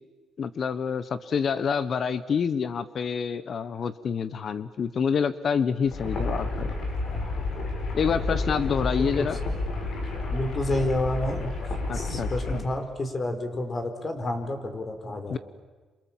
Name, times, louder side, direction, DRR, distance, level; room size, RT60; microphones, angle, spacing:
voice 1, 0.4-6.7 7.9-9.4 11.9-12.6 15.3-15.4, left 6 dB, 55° left, 14 dB, 1.1 m, -27 dB
sound 1, 5.8-12.6, left 2 dB, 70° left, 7.5 m, -30 dB
voice 2, 10.3-11.5 11.9-15.4, left 1 dB, 35° left, 7 dB, 4.6 m, -29 dB
28.0 x 27.5 x 7.5 m, 1.3 s
cardioid pair, 90°, 0 cm